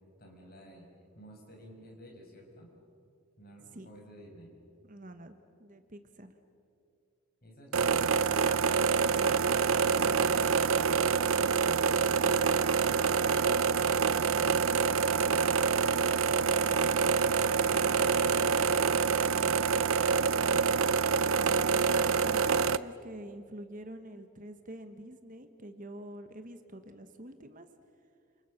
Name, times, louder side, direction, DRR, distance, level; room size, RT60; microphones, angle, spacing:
voice 1, 0.2-0.9 1.1-2.7 3.4-4.5 7.4-8.3, equal, 40° left, 0 dB, 5.9 m, -52 dB
voice 2, 4.8-6.4 21.8-27.7, right 1 dB, 35° right, 8 dB, 1.3 m, -46 dB
sound 1, 7.7-22.8, right 5 dB, 65° right, 0.6 m, -26 dB
29.0 x 27.5 x 6.5 m, 2.5 s
head